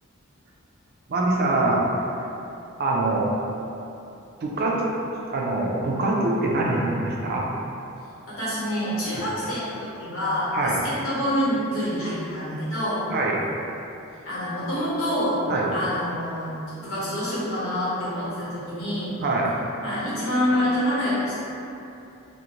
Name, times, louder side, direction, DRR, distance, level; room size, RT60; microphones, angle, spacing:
voice 1, 1.1-1.9 2.8-3.3 4.4-4.9 5.3-7.5 9.1-9.2 10.5-10.8 13.1-13.4 15.5-15.7 19.2-19.5, right 2 dB, 45° right, -3 dB, 0.4 m, -24 dB
voice 2, 8.3-13.0 14.2-15.4 15.7-16.5 16.8-19.1 19.8-21.4, equal, 75° left, -10 dB, 1.0 m, -26 dB
2.5 x 2.1 x 2.9 m, 2.8 s
head